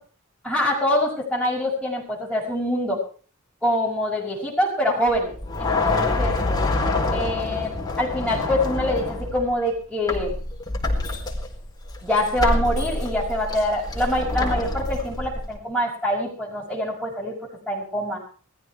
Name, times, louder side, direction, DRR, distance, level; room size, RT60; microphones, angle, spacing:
voice 1, 0.4-3.0 3.6-6.3 7.1-7.7 8.0-10.3 12.0-17.4 17.7-18.2, left 1 dB, ahead, -7 dB, 5.7 m, -25 dB
sound 1, 5.1-9.6 10.1-15.6, left 2 dB, 20° left, 4.4 m, -26 dB
20.5 x 14.5 x 4.7 m, 0.42 s
head